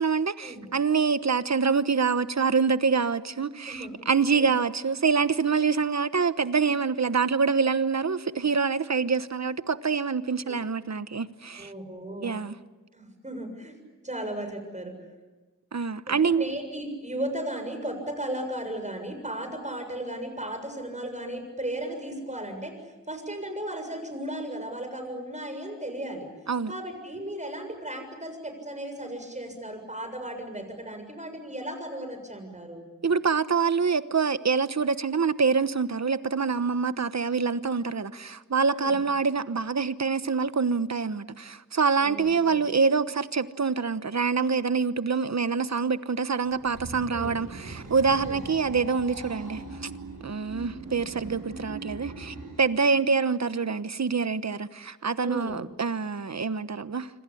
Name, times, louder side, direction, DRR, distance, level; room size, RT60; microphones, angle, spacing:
voice 1, 0.0-11.7 12.2-12.6 15.7-16.4 26.5-26.7 33.0-49.9 50.2-57.1, right 5 dB, 60° right, 1.1 m, -26 dB
voice 2, 11.6-12.3 12.9-13.7 14.0-14.9 16.1-22.8 23.1-26.3 26.7-32.9 38.7-39.0 42.0-42.6 47.1-47.3 48.2-48.4 52.8-53.0 55.2-55.6, right 1 dB, 25° right, 6.9 m, -35 dB
sound 1, 46.4-52.7, right 3 dB, 80° right, 5.7 m, -40 dB
26.5 x 26.0 x 8.6 m
wide cardioid pair, 70°, 31 cm